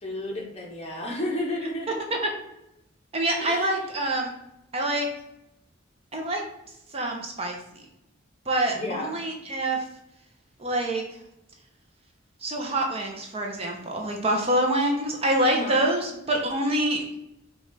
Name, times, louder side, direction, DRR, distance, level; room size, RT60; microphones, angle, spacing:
voice 1, 0.0-2.0 3.4-3.8 8.7-9.2 15.5-15.8, left 1 dB, 30° left, 0 dB, 1.0 m, -32 dB
voice 2, 3.1-4.3 4.7-5.1 6.1-6.4 6.9-7.6 8.5-9.8 10.6-11.0 12.4-17.2, right 1 dB, 30° right, 2 dB, 0.7 m, -26 dB
5.1 x 2.4 x 3.9 m, 0.84 s
head